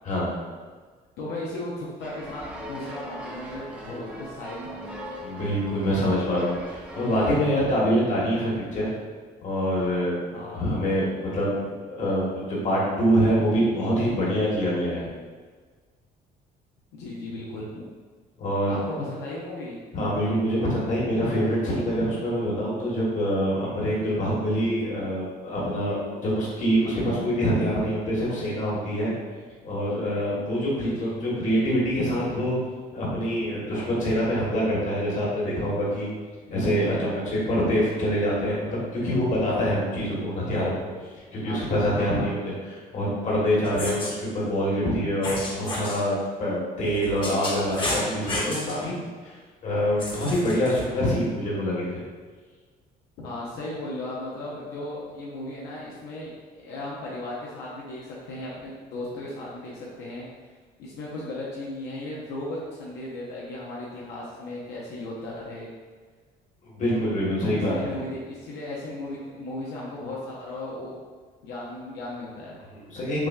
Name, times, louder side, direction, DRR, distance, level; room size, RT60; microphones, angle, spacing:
voice 1, 1.2-5.0 10.3-10.7 16.9-17.8 18.6-19.8 30.7-31.1 41.4-41.6 41.9-42.3 53.2-60.3 60.8-65.7 67.6-71.0 71.4-72.6, left 1 dB, 85° left, -5 dB, 0.7 m, -36 dB
sound 1, 2.0-7.5, right 1 dB, 5° right, 0.6 m, -39 dB
voice 2, 5.2-8.9 9.4-10.2 10.5-15.1 18.4-18.8 19.9-29.1 29.6-32.6 32.9-36.1 36.5-40.7 41.3-49.4 49.6-52.0 66.6-68.0 72.7-73.3, equal, 45° left, -6 dB, 1.4 m, -25 dB
sound 2, 43.6-44.1 45.2-46.0 46.8-48.8 50.0-50.8, left 1 dB, 30° left, 1.0 m, -31 dB
5.8 x 2.2 x 2.4 m, 1.5 s
cardioid pair, 110°, 17 cm